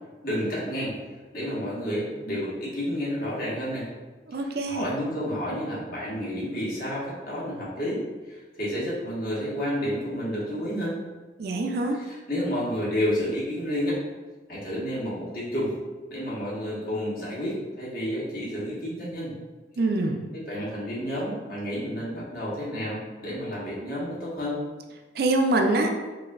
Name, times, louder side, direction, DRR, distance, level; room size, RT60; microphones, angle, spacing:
voice 1, 0.2-0.9 1.3-3.9 4.4-8.0 8.3-11.0 12.1-14.0 14.5-15.7 16.1-19.3 20.3-24.6, equal, 55° left, -7 dB, 1.4 m, -30 dB
voice 2, 4.3-4.9 11.4-12.0 19.8-20.2 25.1-25.9, right 2 dB, 55° right, 4 dB, 0.4 m, -24 dB
5.1 x 2.7 x 2.4 m, 1.3 s
head